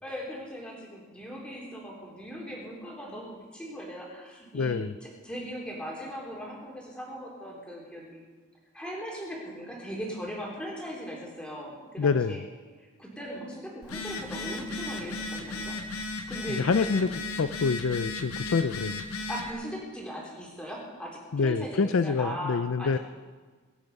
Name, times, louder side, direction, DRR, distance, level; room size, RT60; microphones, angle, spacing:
voice 1, 0.0-8.2 8.7-12.4 12.8-15.7 16.3-17.1 19.3-23.0, equal, 5° left, -3 dB, 3.3 m, -39 dB
voice 2, 4.5-4.9 12.0-12.4 16.6-17.1 17.4-19.0 21.3-23.0, left 4 dB, 65° left, 12 dB, 0.4 m, -26 dB
Telephone, 13.8-19.5, left 2 dB, 85° left, 1.5 m, -35 dB
23.5 x 8.3 x 5.3 m, 1.4 s
head